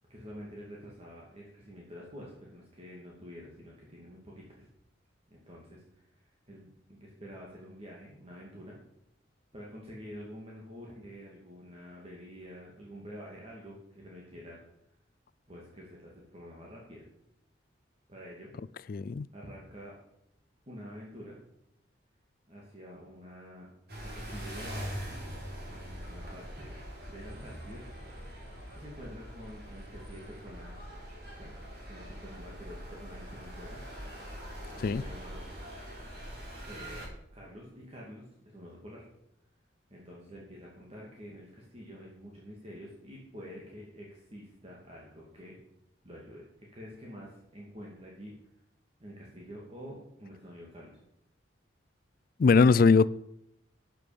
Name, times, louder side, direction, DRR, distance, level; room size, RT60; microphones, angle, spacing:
voice 1, 0.1-4.7 5.3-8.8 9.5-14.6 15.5-17.1 18.1-18.5 19.3-20.0 20.7-21.4 22.5-23.7 24.0-25.0 25.7-26.7 27.1-27.9 28.7-30.8 31.4-31.6 31.9-34.1 34.7-35.4 36.7-39.0 39.9-45.6 46.0-48.4 49.0-51.0, equal, 30° right, -4 dB, 2.7 m, -48 dB
voice 2, 18.9-19.3 34.8-35.0 52.4-53.1, left 4 dB, 50° left, 17 dB, 0.3 m, -21 dB
sound 1, 23.9-37.1, equal, 55° right, 4.4 m, -43 dB
13.0 x 9.1 x 5.3 m, 0.78 s
head